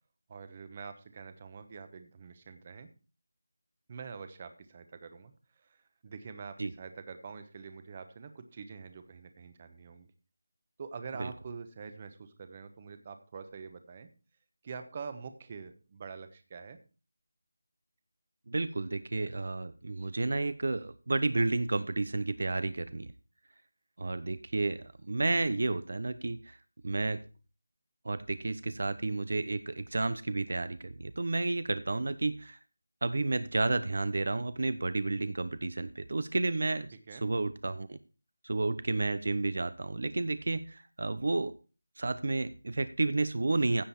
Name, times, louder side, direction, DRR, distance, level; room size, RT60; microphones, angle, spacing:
voice 1, 0.3-2.9 3.9-10.1 10.8-14.1 14.6-16.8 37.1-37.2, right 5 dB, 25° right, 9 dB, 1.0 m, -45 dB
voice 2, 18.5-23.1 24.0-26.6 26.8-27.2 28.0-32.6 33.0-36.9 37.2-38.0 38.4-41.5 42.0-43.8, right 2 dB, 60° right, 14 dB, 0.7 m, -31 dB
15.5 x 5.4 x 4.2 m, 0.34 s
figure-of-eight pair, 170°, 0 cm